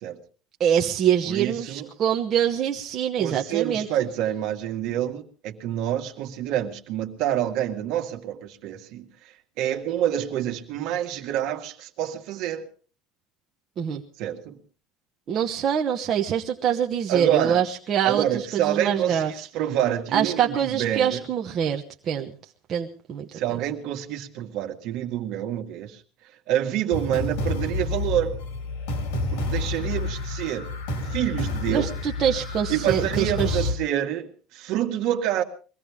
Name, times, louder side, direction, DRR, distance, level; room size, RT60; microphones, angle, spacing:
voice 1, 0.6-3.9 13.8-14.0 15.3-19.3 20.1-22.3 22.7-23.3 31.7-33.7, right 9 dB, 30° right, 1.0 m, -24 dB
voice 2, 1.2-1.9 3.2-12.7 14.2-14.6 17.1-17.6 18.0-21.2 23.3-26.0 26.5-28.4 29.3-30.7 31.0-31.9 32.7-35.4, right 11 dB, 55° right, 1.9 m, -27 dB
sound 1, 26.9-33.7, left 2 dB, 80° left, 4.0 m, -29 dB
23.0 x 16.5 x 3.5 m
cardioid pair, 170°, 0 cm